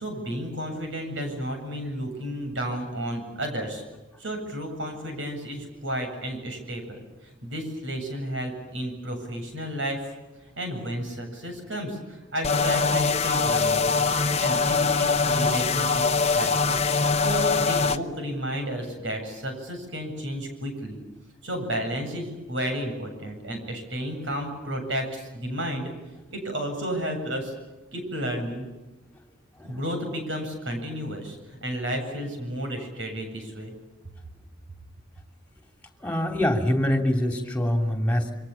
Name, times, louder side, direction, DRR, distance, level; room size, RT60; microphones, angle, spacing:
voice 1, 0.0-3.8 4.2-6.8 7.2-10.1 10.6-21.0 21.4-25.9 26.3-27.5 27.9-28.7 29.6-33.7, equal, 65° right, 5 dB, 8.0 m, -32 dB
sound 1, 12.4-18.0, left 4 dB, 30° left, 0.9 m, -23 dB
voice 2, 36.0-38.3, left 1 dB, 5° left, 5 dB, 3.1 m, -24 dB
28.5 x 25.0 x 7.2 m, 1.1 s
head